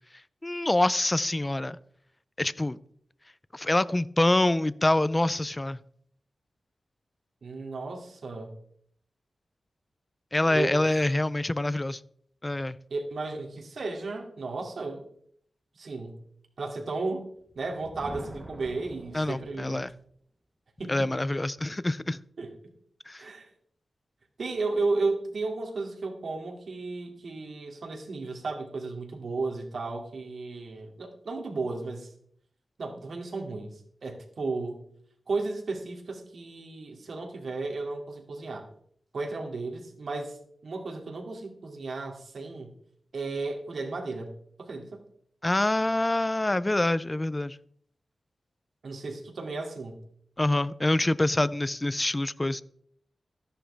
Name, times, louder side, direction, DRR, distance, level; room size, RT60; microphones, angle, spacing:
voice 1, 0.4-1.8 2.4-2.8 3.5-5.8 10.3-12.0 12.4-12.8 19.1-19.9 20.9-22.2 23.1-23.2 45.4-47.6 50.4-52.6, left 1 dB, 20° left, 17 dB, 0.4 m, -26 dB
voice 2, 7.4-8.6 10.5-11.1 12.9-15.0 15.8-16.2 16.6-17.3 17.6-19.9 20.8-21.1 22.4-22.5 23.2-23.5 24.4-32.1 32.8-34.8 35.3-38.7 39.1-40.4 40.6-42.7 43.1-45.0 48.8-50.0, right 3 dB, 65° right, 1 dB, 2.5 m, -34 dB
Thunder, 17.4-20.1, right 1 dB, 20° right, 0.9 m, -45 dB
13.5 x 11.0 x 3.4 m, 0.64 s
wide cardioid pair, 105°, 0 cm